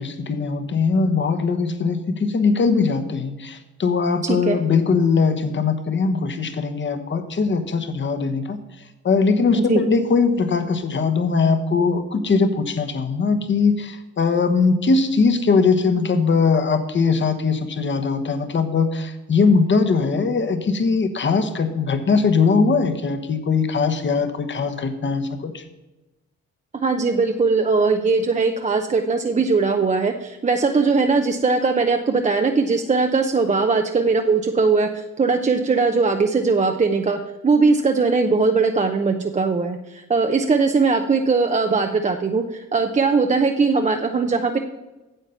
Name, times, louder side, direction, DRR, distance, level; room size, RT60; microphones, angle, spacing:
voice 1, 0.0-8.6 9.0-25.6, left 4 dB, 40° left, 8 dB, 1.1 m, -20 dB
voice 2, 4.2-4.6 9.5-9.8 26.7-44.6, right 4 dB, 25° right, 5 dB, 0.6 m, -20 dB
9.0 x 7.5 x 5.7 m, 1.1 s
cardioid pair, 90°, 30 cm